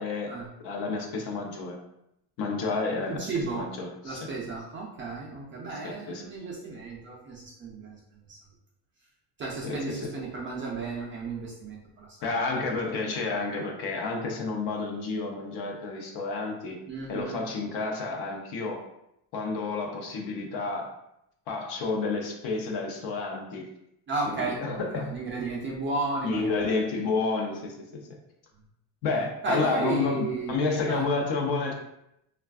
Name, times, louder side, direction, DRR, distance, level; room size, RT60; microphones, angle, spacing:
voice 1, 0.0-0.4 0.6-1.8 2.4-3.3 3.5-4.2 5.8-6.2 9.6-10.1 12.2-16.8 17.1-18.8 19.3-20.9 21.5-23.7 24.3-25.1 26.2-27.8 29.0-31.7, left 3 dB, 60° left, 1 dB, 0.7 m, -30 dB
voice 2, 3.1-3.7 4.0-8.0 8.3-8.4 9.4-12.1 16.9-17.4 24.1-26.6 29.4-30.6 30.9-31.0, right 3 dB, 30° right, -4 dB, 0.4 m, -33 dB
3.3 x 2.3 x 2.3 m, 0.80 s
cardioid pair, 150°, 45 cm